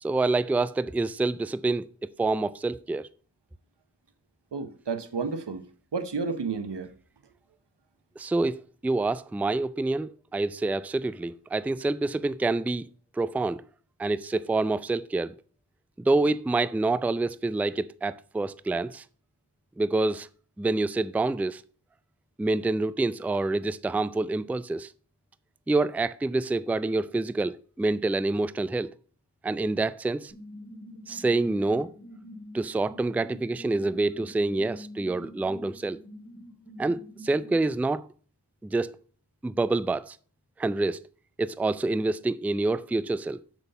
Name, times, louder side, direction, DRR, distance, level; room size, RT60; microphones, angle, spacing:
voice 1, 0.0-3.1 8.2-12.9 13.1-13.6 14.0-15.3 16.0-19.0 19.8-20.3 20.6-21.6 22.4-24.9 25.7-28.9 29.4-30.3 31.1-32.0 32.5-36.0 36.8-38.1 38.6-39.0 39.4-40.2 40.6-41.0 41.4-43.4, right 2 dB, 5° right, 0.3 m, -27 dB
voice 2, 4.5-5.6 5.9-6.9, right 4 dB, 90° right, 1.1 m, -31 dB
sound 1, 30.3-37.6, equal, 45° left, 2.5 m, -46 dB
7.2 x 6.1 x 5.4 m
wide cardioid pair, 55°, 40 cm